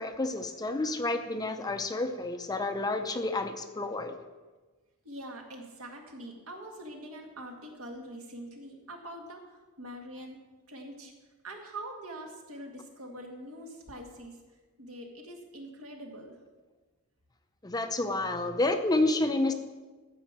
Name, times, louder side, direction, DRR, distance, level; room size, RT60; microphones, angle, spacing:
voice 1, 0.0-4.1 17.6-19.5, left 2 dB, 15° left, 7 dB, 0.6 m, -29 dB
voice 2, 5.0-10.4 10.7-11.1 11.4-14.4 14.8-16.4, right 1 dB, 65° right, 2 dB, 1.9 m, -44 dB
12.5 x 5.1 x 7.4 m, 1.3 s
head